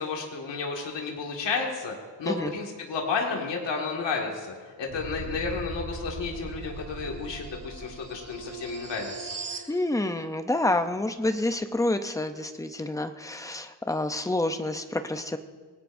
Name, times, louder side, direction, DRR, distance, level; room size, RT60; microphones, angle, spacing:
voice 1, 0.0-9.7, left 4 dB, 70° left, 0 dB, 2.0 m, -32 dB
sound 1, 4.9-9.7, right 4 dB, 45° right, 1.6 m, -39 dB
voice 2, 9.7-15.4, left 2 dB, 10° left, 8 dB, 0.5 m, -28 dB
26.0 x 18.5 x 2.6 m, 1.5 s
wide cardioid pair, 170°, 44 cm